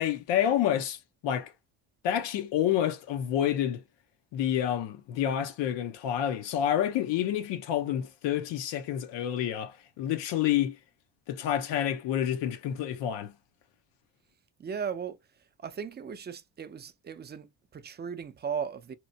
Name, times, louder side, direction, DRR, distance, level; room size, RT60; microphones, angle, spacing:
voice 1, 0.0-1.5 2.0-3.8 4.3-10.8 11.3-13.3, left 10 dB, 85° left, 0.8 m, -28 dB
voice 2, 14.6-15.2 15.6-18.9, right 7 dB, 25° right, 0.4 m, -37 dB
2.9 x 2.1 x 2.7 m
cardioid pair, 85°, 42 cm